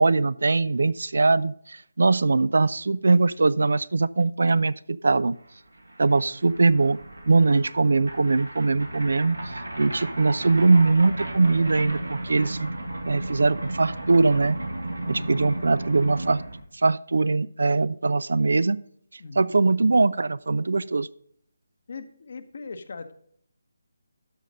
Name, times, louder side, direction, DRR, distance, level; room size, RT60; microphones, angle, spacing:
voice 1, 0.0-5.4 6.0-7.0 7.3-9.4 9.8-12.7 13.1-14.6 15.1-16.4 16.8-18.8 19.4-21.1, right 3 dB, 65° right, 20 dB, 0.4 m, -21 dB
sound 1, 5.5-5.6 5.7-16.6, right 1 dB, 85° right, 2.3 m, -34 dB
voice 2, 9.8-10.1 15.0-15.4 19.2-19.6 21.9-23.1, left 3 dB, 55° left, 10 dB, 1.0 m, -40 dB
12.5 x 5.1 x 5.4 m, 0.67 s
figure-of-eight pair, 150°, 0 cm